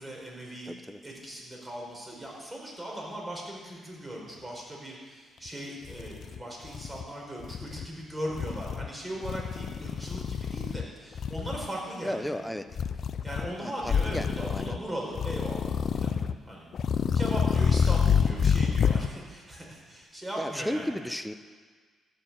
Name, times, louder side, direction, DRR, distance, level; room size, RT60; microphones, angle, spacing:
voice 1, 0.0-0.7 1.0-12.4 13.2-16.1 16.5-16.7 17.1-20.9, right 1 dB, 15° right, -2 dB, 4.6 m, -38 dB
voice 2, 0.6-1.0 12.0-12.7 13.6-14.8 20.4-21.3, left 1 dB, 5° left, 9 dB, 0.8 m, -34 dB
sound 1, 5.5-5.6 5.9-7.0 7.4-7.9 8.3-8.9 9.2-10.8 11.1-11.7 12.7-13.5 13.8-14.8 15.1-16.3 16.7-19.1, left 7 dB, 55° left, 0.5 m, -27 dB
13.5 x 7.1 x 8.8 m, 1.5 s
cardioid pair, 90°, 0 cm